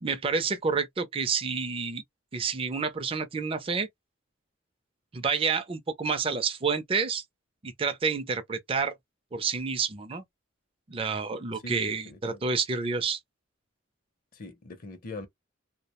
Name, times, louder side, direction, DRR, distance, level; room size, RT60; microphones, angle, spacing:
voice 1, 0.0-2.0 2.3-3.9 5.1-7.2 7.6-8.9 9.3-10.2 10.9-13.2, right 5 dB, 25° right, 0.4 m, -29 dB
voice 2, 11.6-12.4 14.3-15.3, left 2 dB, 45° left, 0.6 m, -42 dB
2.3 x 2.1 x 2.9 m
head